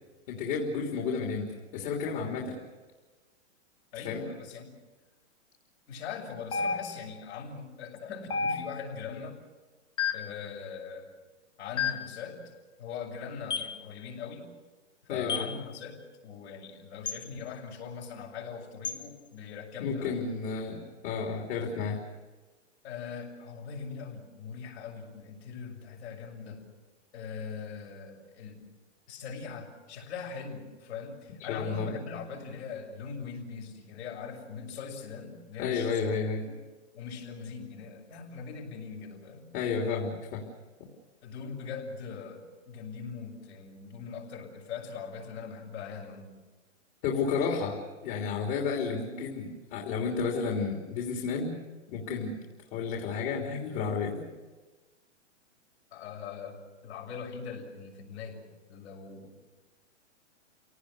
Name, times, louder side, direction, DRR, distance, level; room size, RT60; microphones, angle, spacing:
voice 1, 0.3-2.5 3.9-4.2 15.1-15.5 19.8-22.0 31.5-31.9 35.6-36.4 39.5-40.4 47.0-47.8 48.0-51.5 51.9-52.3 52.7-54.2, left 5 dB, 40° left, 0 dB, 3.4 m, -31 dB
voice 2, 3.9-4.7 5.9-9.4 10.1-11.1 11.6-12.5 12.8-14.5 15.1-20.3 22.8-26.6 27.1-28.6 29.1-36.1 36.5-36.6 36.9-39.5 41.2-46.4 55.9-56.6 56.8-59.4, left 6 dB, 65° left, 1 dB, 6.8 m, -41 dB
sound 1, 6.5-7.2 8.3-9.0 10.0-10.4 11.8-12.2 13.5-13.8 15.3-15.6 17.1-17.2 18.8-19.0, left 5 dB, 10° left, 0.8 m, -31 dB
29.0 x 18.5 x 6.7 m, 1.2 s
hypercardioid pair, 140°, 37 cm